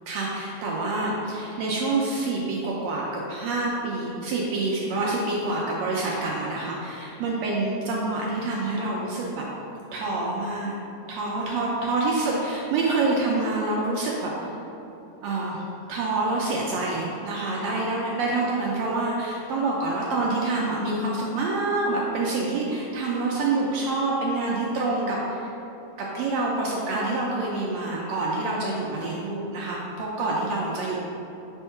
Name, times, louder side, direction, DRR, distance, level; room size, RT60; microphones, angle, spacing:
voice 1, 0.1-9.4 9.9-10.7 11.1-14.3 15.2-15.6 15.9-25.5 26.0-31.0, right 2 dB, 80° right, -3 dB, 1.5 m, -27 dB
4.5 x 4.5 x 5.6 m, 2.9 s
omnidirectional pair, 3.7 m